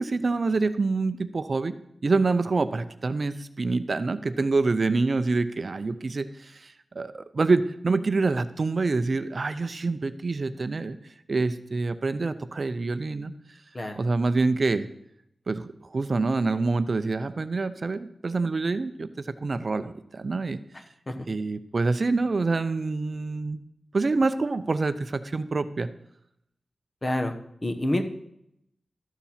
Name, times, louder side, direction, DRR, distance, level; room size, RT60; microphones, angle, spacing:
voice 1, 0.0-1.8 2.0-11.0 11.3-13.6 14.0-14.9 15.5-20.6 21.3-23.6 23.9-25.9, right 3 dB, 45° right, 11 dB, 0.5 m, -26 dB
voice 2, 27.0-27.3 27.6-28.0, left 1 dB, 30° left, 7 dB, 1.2 m, -27 dB
13.0 x 7.2 x 5.7 m, 0.78 s
wide cardioid pair, 120°, 0 cm